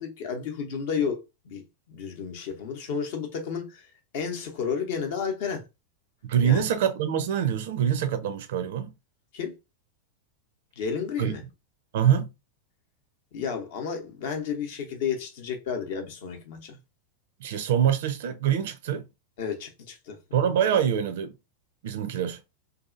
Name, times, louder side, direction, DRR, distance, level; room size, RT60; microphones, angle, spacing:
voice 1, 0.0-3.9 4.1-5.6 6.4-6.6 9.3-9.6 10.8-11.4 13.3-16.8 19.4-20.4, left 6 dB, 50° left, 0.7 m, -32 dB
voice 2, 6.2-8.9 11.2-11.3 11.9-12.3 17.4-19.1 20.3-21.3 21.8-22.4, right 9 dB, 55° right, 0.4 m, -25 dB
2.7 x 2.4 x 2.4 m
figure-of-eight pair, 90°, 0 cm